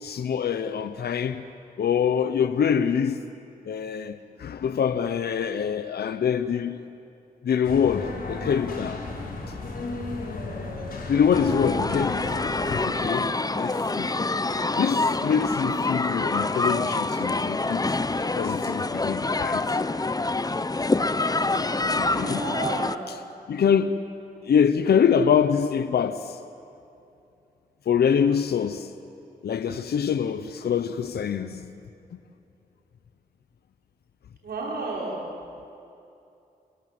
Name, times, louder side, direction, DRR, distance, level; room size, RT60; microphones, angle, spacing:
voice 1, 0.0-1.4 1.8-3.2 3.7-6.8 7.4-9.0 11.1-12.4 12.8-14.1 14.8-17.9 18.4-19.7 21.6-22.5 23.1-23.2 23.5-24.0 24.4-26.4 27.9-28.9 29.4-31.7, left 7 dB, 80° left, 0.8 m, -25 dB
sound 1, 7.6-12.8, left 2 dB, 65° left, 6.2 m, -34 dB
sound 2, 11.3-23.0, left 3 dB, 25° left, 0.8 m, -26 dB
voice 2, 22.1-22.9 34.4-35.2, right 3 dB, 80° right, 5.5 m, -31 dB
29.0 x 22.0 x 7.8 m
cardioid pair, 60°, 16 cm